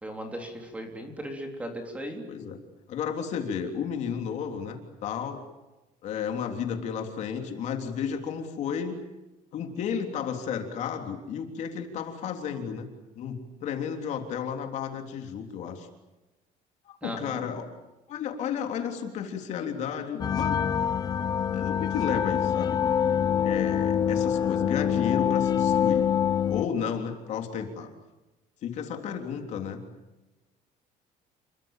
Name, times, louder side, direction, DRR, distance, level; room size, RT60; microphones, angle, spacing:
voice 1, 0.0-2.3 17.0-17.5, equal, 10° right, 3 dB, 3.6 m, -37 dB
voice 2, 2.3-2.6 2.9-5.4 6.0-9.0 9.5-12.8 13.1-15.9 16.9-17.6 18.1-20.6 21.5-22.8 23.4-26.1 26.5-27.9 28.6-29.8, left 7 dB, 50° left, 4 dB, 3.4 m, -32 dB
sound 1, 20.2-26.6, left 8 dB, 25° left, 0.8 m, -25 dB
29.0 x 23.5 x 7.4 m, 1.1 s
cardioid pair, 175°, 15 cm